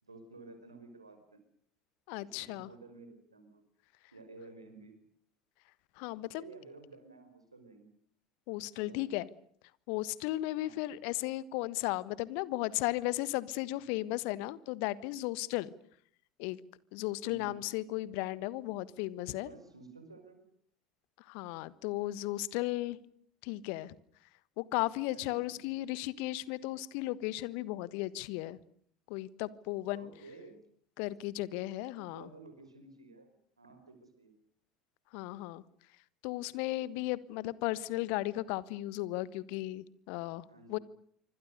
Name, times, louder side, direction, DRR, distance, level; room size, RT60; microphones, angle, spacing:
voice 1, 0.0-1.4 2.2-3.6 4.1-5.0 6.4-7.9 8.7-9.1 10.6-11.0 17.2-17.6 19.4-20.5 25.1-25.6 29.9-30.6 32.0-34.3 40.5-40.8, right 3 dB, 85° right, 8 dB, 5.3 m, -53 dB
voice 2, 2.1-2.7 6.0-6.4 8.5-9.3 9.9-15.7 16.4-16.6 16.9-19.5 21.2-23.0 23.4-23.9 24.6-28.6 29.1-30.1 31.0-32.3 35.1-35.6 36.2-40.8, left 17 dB, 55° left, 19 dB, 1.3 m, -35 dB
27.0 x 25.0 x 6.6 m, 0.63 s
figure-of-eight pair, 70°, 3 cm